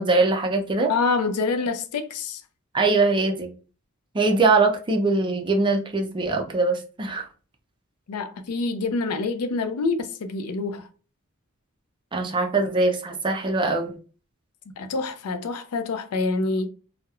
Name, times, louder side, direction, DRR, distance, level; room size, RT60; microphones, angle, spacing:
voice 1, 0.0-0.9 2.7-3.5 4.1-7.3 12.1-13.9, right 3 dB, 20° right, 0.4 m, -22 dB
voice 2, 0.9-2.4 8.1-10.9 14.8-16.7, left 3 dB, 90° left, 0.4 m, -26 dB
2.9 x 2.0 x 2.3 m
head